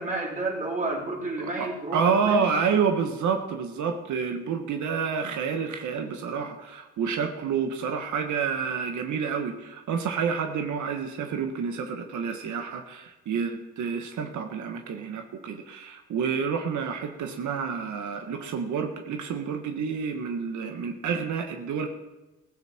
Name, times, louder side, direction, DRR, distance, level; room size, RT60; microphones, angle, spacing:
voice 1, 0.0-2.5, right 2 dB, 25° right, -2 dB, 4.1 m, -31 dB
voice 2, 1.4-21.9, right 6 dB, 75° right, 5 dB, 1.6 m, -29 dB
15.5 x 15.0 x 4.5 m, 1.1 s
cardioid pair, 90°, 30 cm